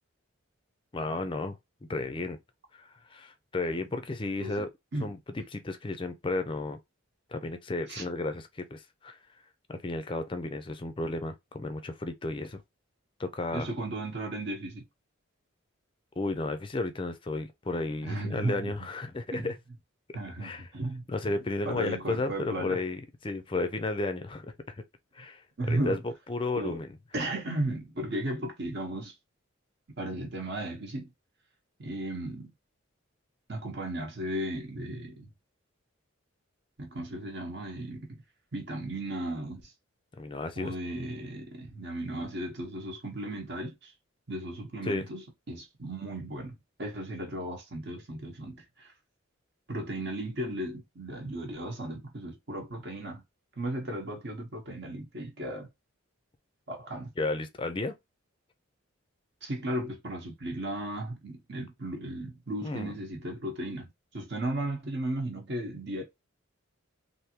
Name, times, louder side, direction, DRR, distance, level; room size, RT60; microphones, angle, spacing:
voice 1, 0.9-1.6 1.9-2.4 2.7-4.7 5.0-6.8 7.3-9.2 9.7-12.6 13.2-13.7 16.2-19.6 20.4-20.7 21.1-24.5 25.1-25.4 25.7-26.9 40.2-40.7 44.8-45.1 57.2-57.9 62.6-62.9, left 2 dB, 25° left, 0.5 m, -33 dB
voice 2, 13.5-14.8 18.0-18.7 19.3-19.5 20.1-21.0 21.6-22.8 25.6-26.0 26.6-26.8 27.1-29.1 30.0-31.1 31.8-32.5 33.5-35.3 36.8-38.2 38.5-39.7 40.6-43.9 44.3-48.9 49.7-53.2 53.6-55.7 56.7-57.1 59.4-63.9 64.1-66.0, right 1 dB, 55° right, 1.0 m, -35 dB
3.5 x 2.6 x 2.8 m
head